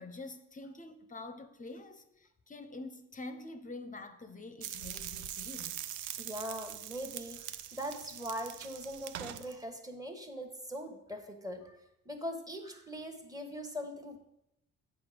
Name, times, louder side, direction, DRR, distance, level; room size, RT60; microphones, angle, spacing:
voice 1, 0.0-5.8, left 2 dB, 25° left, 0.7 m, -46 dB
sound 1, 4.6-9.5, right 11 dB, 80° right, 0.5 m, -43 dB
voice 2, 6.2-7.5 7.7-14.2, equal, 10° right, 1.3 m, -41 dB
8.4 x 5.5 x 5.0 m
cardioid pair, 90°, 30 cm